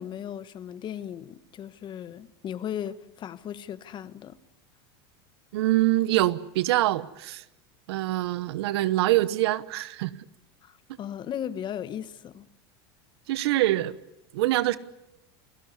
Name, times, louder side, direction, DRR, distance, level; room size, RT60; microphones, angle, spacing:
voice 1, 0.0-4.4 10.6-12.5, left 9 dB, 35° left, 1.3 m, -36 dB
voice 2, 5.5-7.4 7.9-10.1 13.3-14.0 14.3-14.8, right 16 dB, 80° right, 1.1 m, -24 dB
28.5 x 17.0 x 9.8 m
supercardioid pair, 120°, 13 cm